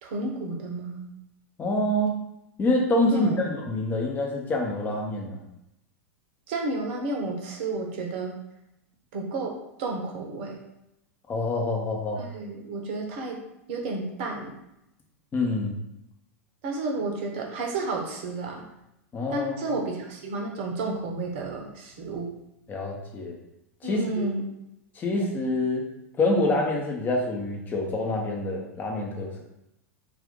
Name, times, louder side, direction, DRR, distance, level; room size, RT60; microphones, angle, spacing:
voice 1, 0.0-1.1 3.1-3.5 6.5-8.4 9.1-10.6 12.2-13.4 13.7-14.5 16.6-18.6 19.3-22.3 23.8-24.4, right 3 dB, 50° right, 1 dB, 0.8 m, -31 dB
voice 2, 1.6-2.2 2.6-5.4 11.3-12.2 15.3-15.8 19.1-19.8 22.7-23.4 23.8-24.3 25.0-25.9 26.2-29.4, left 1 dB, 25° left, 0 dB, 0.8 m, -26 dB
2.5 x 2.5 x 3.8 m, 0.84 s
figure-of-eight pair, 90°, 8 cm